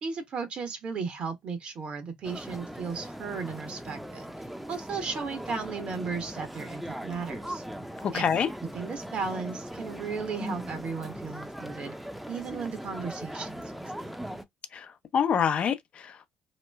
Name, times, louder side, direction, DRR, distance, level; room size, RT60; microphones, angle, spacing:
voice 1, 0.0-4.2 4.7-7.6 8.1-8.3 8.7-11.9 12.3-13.8, right 5 dB, 55° right, 1.0 m, -35 dB
sound 1, 2.2-14.4, equal, 5° right, 0.6 m, -39 dB
voice 2, 8.0-8.5 14.7-16.3, left 7 dB, 55° left, 0.6 m, -27 dB
2.9 x 2.1 x 3.3 m
supercardioid pair, 65°, 2 cm